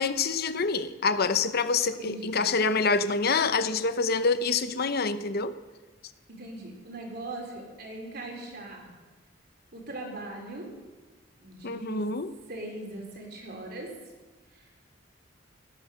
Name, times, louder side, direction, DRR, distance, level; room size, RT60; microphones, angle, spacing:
voice 1, 0.0-5.5 11.6-12.3, left 4 dB, 55° left, 12 dB, 0.8 m, -26 dB
voice 2, 1.8-2.4 6.3-8.9 9.7-10.7 11.4-12.1 12.5-13.9, right 2 dB, 55° right, 1 dB, 4.1 m, -40 dB
17.0 x 12.5 x 6.4 m, 1.2 s
head